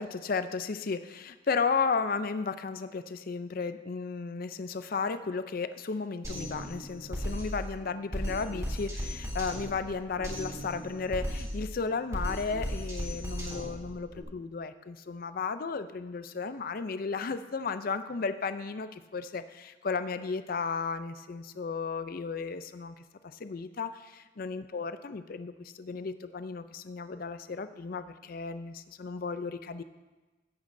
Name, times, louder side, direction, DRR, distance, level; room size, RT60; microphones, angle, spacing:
voice 1, 0.0-22.9 23.2-29.8, left 5 dB, 45° left, 11 dB, 0.4 m, -34 dB
Drum kit, 6.2-14.2, equal, 15° right, 3.2 m, -36 dB
16.0 x 8.3 x 2.6 m, 1.2 s
head